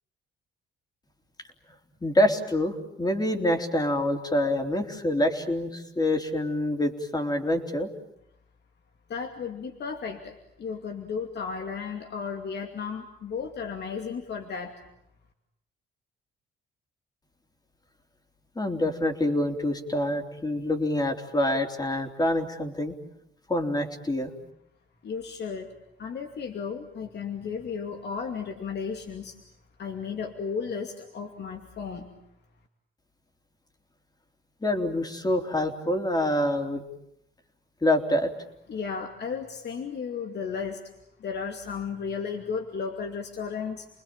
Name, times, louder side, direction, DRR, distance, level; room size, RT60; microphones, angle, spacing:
voice 1, 2.0-7.9 18.6-22.9 23.5-24.3 34.6-36.8 37.8-38.3, left 1 dB, 20° left, 4 dB, 3.7 m, -26 dB
voice 2, 9.1-14.8 25.0-25.7 26.0-29.4 29.8-32.1 38.7-40.8 41.2-43.9, left 6 dB, 60° left, 4 dB, 2.6 m, -34 dB
30.0 x 20.5 x 9.0 m, 0.80 s
cardioid pair, 90°, 20 cm